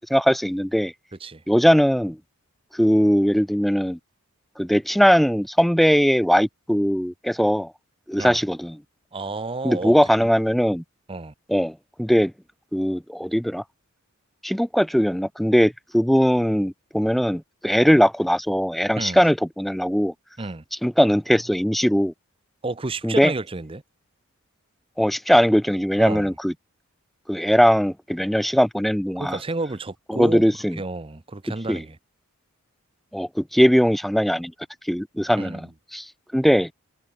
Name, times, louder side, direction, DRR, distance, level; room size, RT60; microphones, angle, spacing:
voice 1, 0.1-0.9 1.5-2.2 2.7-4.0 4.6-7.7 8.1-8.8 9.6-10.8 11.5-12.3 12.7-13.6 14.4-20.1 20.8-22.1 23.0-23.3 25.0-26.5 27.3-29.4 30.1-30.8 31.7-31.8 33.1-34.5 34.8-36.7, equal, ahead, 0.3 m, -20 dB
voice 2, 9.1-10.0 11.1-11.3 19.0-19.2 20.4-20.6 22.6-23.8 26.0-26.3 29.2-30.4 30.7-32.0 35.4-35.7, right 2 dB, 25° right, 0.7 m, -31 dB
head